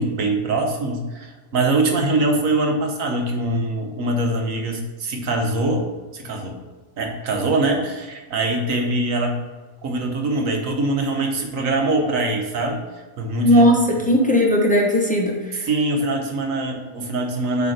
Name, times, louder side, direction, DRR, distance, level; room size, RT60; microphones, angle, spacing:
voice 1, 0.0-5.9 6.1-6.6 7.0-9.4 9.8-12.8 13.2-13.7 15.5-17.7, right 2 dB, 65° right, 2 dB, 1.4 m, -23 dB
voice 2, 13.4-15.7, equal, 5° left, -2 dB, 0.9 m, -17 dB
8.2 x 3.4 x 5.0 m, 1.3 s
omnidirectional pair, 1.5 m